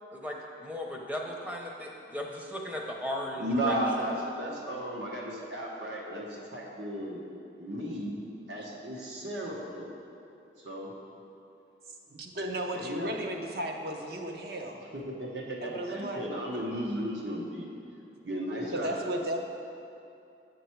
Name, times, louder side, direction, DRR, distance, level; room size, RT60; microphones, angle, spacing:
voice 1, 0.1-3.8, left 1 dB, 10° right, 0 dB, 0.6 m, -36 dB
voice 2, 3.3-7.2 7.6-8.2 8.5-9.9 10.6-10.9 12.7-13.1 15.1-17.7 18.2-19.0, right 1 dB, 85° right, -3 dB, 1.3 m, -34 dB
voice 3, 12.1-14.8 15.6-16.2 18.7-19.4, right 1 dB, 60° right, 3 dB, 0.7 m, -35 dB
8.5 x 5.2 x 4.5 m, 2.7 s
head